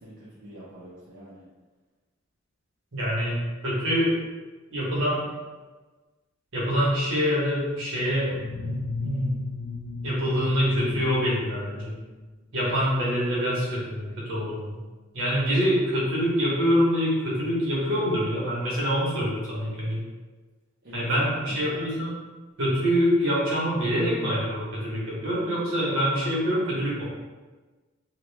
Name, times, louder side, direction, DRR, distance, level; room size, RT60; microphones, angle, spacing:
voice 1, 0.0-1.4 20.8-21.9, right 1 dB, 55° right, -10 dB, 0.8 m, -45 dB
voice 2, 2.9-4.2 4.7-5.3 6.5-8.3 8.6-9.4 10.0-11.9 12.5-14.7 15.1-20.0 20.9-22.1 22.6-27.0, equal, 70° right, -6 dB, 1.2 m, -25 dB
sound 1, 8.2-12.4, left 3 dB, 80° left, 0.6 m, -35 dB
2.9 x 2.4 x 3.3 m, 1.3 s
head